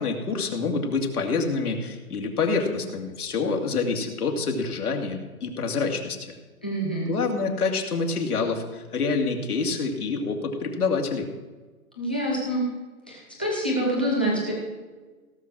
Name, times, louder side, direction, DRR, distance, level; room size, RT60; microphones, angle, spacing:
voice 1, 0.0-6.2 7.0-11.3, left 4 dB, 85° left, 2 dB, 2.6 m, -27 dB
voice 2, 6.6-7.1 12.0-12.7 13.1-14.5, right 1 dB, 5° left, -4 dB, 0.6 m, -26 dB
17.0 x 6.3 x 6.3 m, 1.3 s
hypercardioid pair, 170°, 44 cm